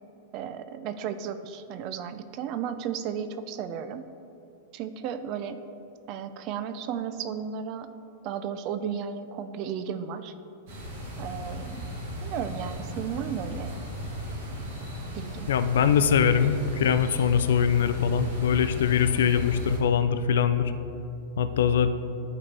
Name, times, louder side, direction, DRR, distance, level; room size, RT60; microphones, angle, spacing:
voice 1, 0.3-4.1 4.7-5.6 6.1-7.9 8.2-10.3 11.2-11.8 12.2-13.7 15.1-15.5, right 8 dB, 30° right, 10 dB, 0.3 m, -34 dB
sound 1, 10.7-19.8, equal, 55° right, 1.6 m, -37 dB
voice 2, 15.5-20.7 21.4-21.9, left 7 dB, 85° left, 11 dB, 0.4 m, -22 dB
11.5 x 4.1 x 3.4 m, 2.9 s
supercardioid pair, 170°, 0 cm